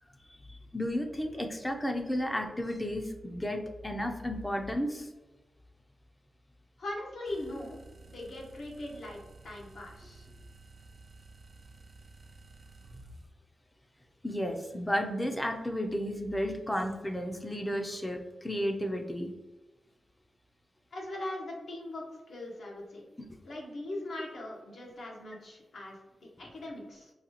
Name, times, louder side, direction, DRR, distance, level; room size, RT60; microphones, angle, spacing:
voice 1, 0.5-5.1 14.2-19.3, equal, 15° left, 4 dB, 0.5 m, -33 dB
voice 2, 6.8-10.3 20.9-23.0 23.4-27.1, left 1 dB, 75° left, -2 dB, 1.0 m, -40 dB
sound 1, 7.3-13.3, right 2 dB, 40° right, 0.5 m, -53 dB
3.9 x 2.3 x 2.8 m, 1.1 s
wide cardioid pair, 100°, 0 cm